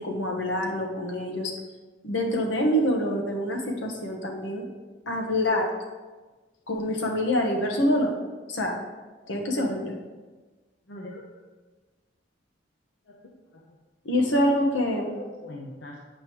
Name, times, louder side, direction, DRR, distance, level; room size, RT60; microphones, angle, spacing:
voice 1, 0.0-1.5 2.0-4.7 5.1-5.7 6.7-8.1 8.5-8.8 9.3-10.0 14.0-15.2, equal, 90° left, 1 dB, 1.1 m, -26 dB
voice 2, 10.9-11.3 13.1-13.8 15.0-16.0, left 1 dB, 75° left, -2 dB, 0.7 m, -42 dB
8.5 x 5.1 x 3.1 m, 1.3 s
head